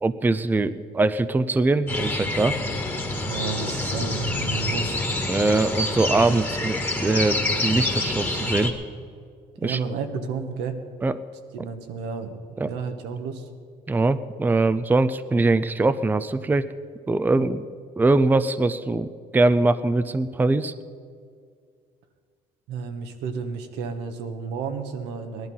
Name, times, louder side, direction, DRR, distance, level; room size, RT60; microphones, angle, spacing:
voice 1, 0.0-2.6 5.3-8.7 9.6-9.8 11.0-11.2 12.6-12.7 13.9-16.7 17.1-17.6 18.0-19.1 19.3-20.7, right 2 dB, 10° right, 13 dB, 0.5 m, -22 dB
sound 1, 1.9-8.7, left 2 dB, 10° left, 1.7 m, -27 dB
voice 2, 3.3-5.0 9.6-10.8 11.5-12.3 12.6-13.5 22.7-25.5, right 5 dB, 90° right, 6 dB, 1.3 m, -31 dB
17.5 x 11.5 x 5.5 m, 2.1 s
cardioid pair, 110°, 17 cm